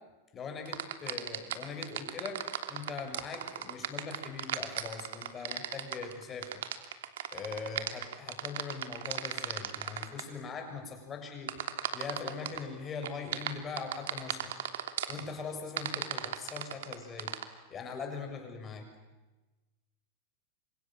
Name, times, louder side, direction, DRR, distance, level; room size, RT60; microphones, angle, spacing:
voice 1, 0.3-6.5 7.3-14.5 15.1-17.3 17.7-18.9, left 5 dB, 25° left, 4 dB, 7.3 m, -41 dB
sound 1, 0.7-10.2 11.5-12.6 13.0-15.2 15.8-17.4, right 11 dB, 85° right, 3.0 m, -36 dB
30.0 x 26.5 x 7.6 m, 1.1 s
supercardioid pair, 140°, 0 cm